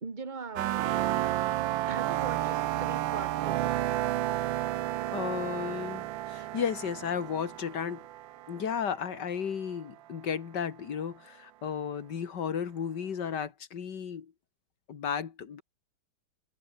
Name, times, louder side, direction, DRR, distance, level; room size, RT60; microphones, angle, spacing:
voice 1, 0.0-1.0 1.9-3.8, right 4 dB, 25° right, 1.9 m, -40 dB
sound 1, 0.6-9.2, right 14 dB, 70° right, 1.4 m, -31 dB
voice 2, 5.1-8.1 8.5-14.3 14.9-15.6, left 7 dB, 55° left, 2.3 m, -34 dB
omnidirectional pair, 2.3 m